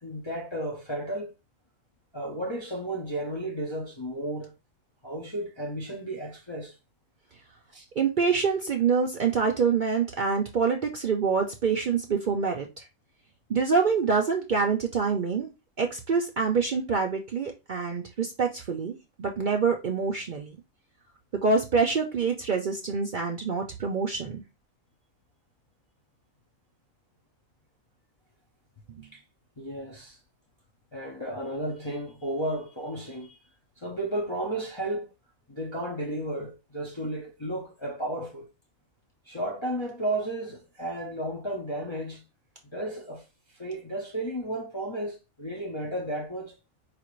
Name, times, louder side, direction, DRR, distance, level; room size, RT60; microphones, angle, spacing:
voice 1, 0.0-1.3 2.1-4.5 5.0-6.8 7.7-7.9 29.1-29.2 29.6-30.2 30.9-33.4 33.8-35.1 35.5-38.5 39.3-42.2 42.6-43.3 43.5-46.6, right 1 dB, 35° left, 0.5 m, -33 dB
voice 2, 8.0-12.8 13.5-15.5 15.8-20.6 21.4-24.4 28.9-29.1, right 5 dB, 55° right, 0.6 m, -26 dB
5.0 x 2.5 x 3.0 m
omnidirectional pair, 1.4 m